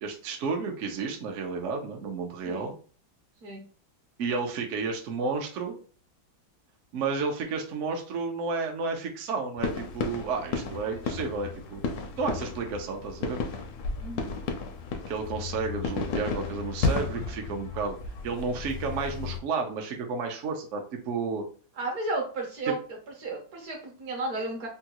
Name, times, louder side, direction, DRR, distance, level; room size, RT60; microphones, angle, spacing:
voice 1, 0.0-2.7 4.2-5.8 6.9-11.9 12.2-13.4 15.1-18.0 18.2-21.4, right 4 dB, 75° right, 2 dB, 0.6 m, -32 dB
sound 1, 9.6-19.4, left 4 dB, 75° left, 0.9 m, -33 dB
voice 2, 14.0-14.4 21.8-22.8 23.2-24.7, right 2 dB, 60° right, 1 dB, 1.0 m, -33 dB
3.6 x 2.3 x 2.8 m, 0.39 s
omnidirectional pair, 2.1 m